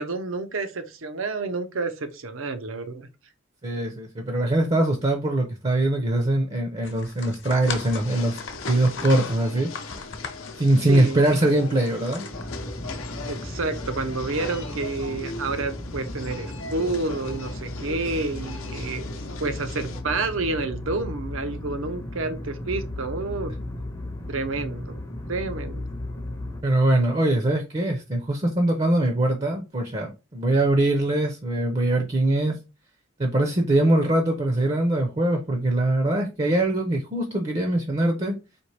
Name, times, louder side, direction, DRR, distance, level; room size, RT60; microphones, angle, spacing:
voice 1, 0.0-3.1 10.9-11.2 13.3-19.0 19.4-23.5 24.3-25.0 25.3-25.9, right 3 dB, 80° right, 0.7 m, -29 dB
voice 2, 3.6-8.4 8.6-9.7 10.6-12.2 26.6-32.6 33.2-38.3, right 1 dB, 30° right, 0.6 m, -22 dB
sound 1, 6.8-13.0, left 5 dB, 60° left, 0.9 m, -38 dB
sound 2, 7.6-20.0, left 3 dB, 85° left, 0.7 m, -39 dB
sound 3, 12.3-26.6, left 1 dB, 15° left, 0.5 m, -35 dB
4.3 x 2.9 x 3.2 m
head